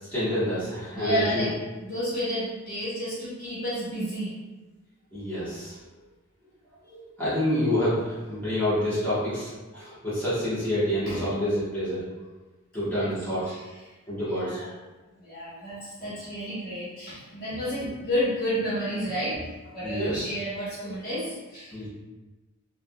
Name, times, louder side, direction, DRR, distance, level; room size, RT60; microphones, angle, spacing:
voice 1, 0.1-1.5 5.1-5.8 6.8-12.0 12.7-13.4 14.1-14.6 19.8-20.3 21.7-21.9, left 1 dB, 10° left, -13 dB, 1.1 m, -28 dB
voice 2, 0.9-1.6 1.8-4.4 11.1-11.2 12.8-13.1 13.4-13.7 14.2-14.7 15.2-21.8, equal, 40° left, -11 dB, 0.9 m, -31 dB
3.4 x 2.5 x 2.2 m, 1.2 s
head